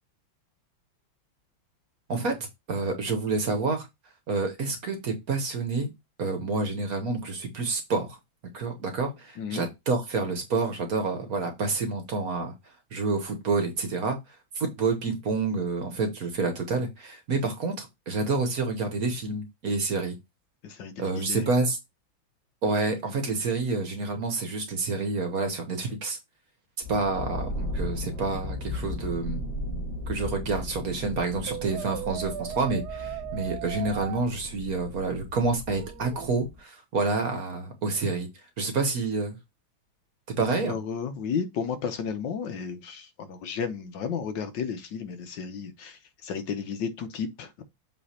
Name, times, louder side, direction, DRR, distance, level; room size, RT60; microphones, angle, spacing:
voice 1, 2.1-3.9 4.3-5.9 6.2-8.2 8.5-12.5 12.9-14.2 14.5-20.1 21.0-21.8 22.6-26.2 26.9-29.4 30.1-38.3 38.6-39.4 40.4-40.7, right 3 dB, 50° right, 1.3 m, -28 dB
voice 2, 20.6-21.5 40.6-47.6, left 6 dB, 70° left, 1.4 m, -33 dB
sound 1, 26.8-36.6, left 1 dB, 30° left, 4.5 m, -36 dB
Brass instrument, 31.5-34.2 35.8-36.3, right 13 dB, 80° right, 0.9 m, -37 dB
7.6 x 3.2 x 4.3 m
omnidirectional pair, 2.2 m